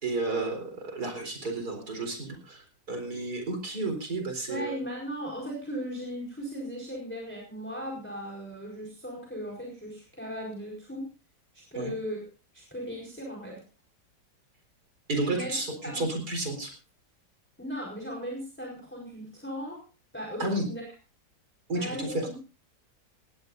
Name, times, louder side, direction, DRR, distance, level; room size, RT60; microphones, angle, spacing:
voice 1, 0.0-2.6 2.9-4.8 11.7-11.9 15.1-16.7 20.4-20.6 21.7-22.3, right 2 dB, 55° right, 5 dB, 4.6 m, -31 dB
voice 2, 4.5-11.0 11.7-12.3 12.5-13.6 15.3-15.5 15.8-16.0 17.6-19.8 20.1-20.9 21.7-22.4, equal, 5° left, -1 dB, 4.5 m, -37 dB
19.0 x 17.0 x 2.6 m, 0.33 s
omnidirectional pair, 1.9 m